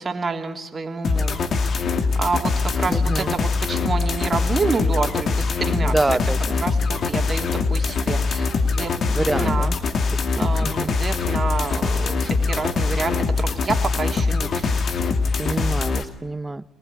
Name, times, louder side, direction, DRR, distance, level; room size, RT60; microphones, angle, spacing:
voice 1, 0.0-1.4 2.1-6.2 6.6-8.9 9.3-9.7 10.4-14.8, right 4 dB, 35° right, 5 dB, 3.3 m, -28 dB
sound 1, 1.0-16.0, left 4 dB, 50° left, 2.5 m, -23 dB
voice 2, 2.9-3.3 5.8-6.6 9.1-9.8 10.1-10.9 15.4-16.6, right 2 dB, 20° right, 17 dB, 1.0 m, -26 dB
25.0 x 19.5 x 8.6 m, 0.98 s
hypercardioid pair, 45°, 0 cm